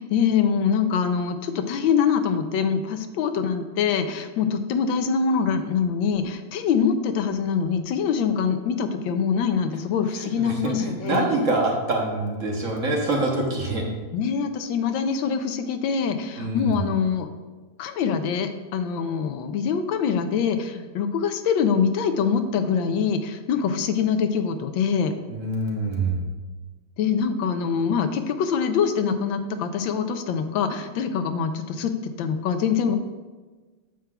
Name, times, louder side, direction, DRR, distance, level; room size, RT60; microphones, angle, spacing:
voice 1, 0.0-11.4 14.1-17.3 17.8-25.1 27.0-31.9 32.2-33.0, left 6 dB, 85° left, 8 dB, 1.4 m, -24 dB
voice 2, 10.2-13.8 16.4-16.8 25.3-26.2, right 2 dB, 50° right, 0 dB, 1.2 m, -25 dB
9.4 x 7.5 x 2.3 m, 1.3 s
omnidirectional pair, 2.1 m